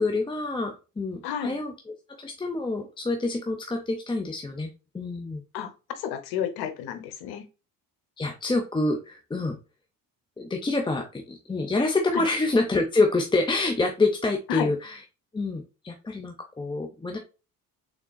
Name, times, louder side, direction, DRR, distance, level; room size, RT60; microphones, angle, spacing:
voice 1, 0.0-1.7 2.2-5.4 8.2-9.6 10.4-15.0 15.3-17.2, left 3 dB, 15° left, 0.6 m, -27 dB
voice 2, 1.2-1.6 5.5-7.4 12.1-12.2 14.5-14.7, left 9 dB, 90° left, 0.8 m, -31 dB
3.7 x 3.6 x 2.2 m
cardioid pair, 90°, 37 cm